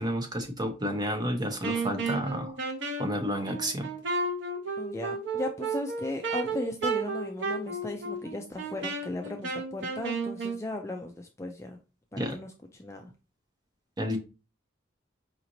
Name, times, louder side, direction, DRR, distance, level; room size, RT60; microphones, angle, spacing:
voice 1, 0.0-2.6 3.0-3.9 12.2-12.4 14.0-14.2, equal, 20° right, 3 dB, 0.8 m, -30 dB
Wind instrument woodwind instrument, 1.6-10.6, right 4 dB, 65° right, 1.0 m, -33 dB
voice 2, 4.8-11.8 12.1-12.5 12.7-13.1, left 2 dB, 15° left, 3 dB, 0.3 m, -36 dB
4.9 x 3.0 x 2.6 m, 0.31 s
head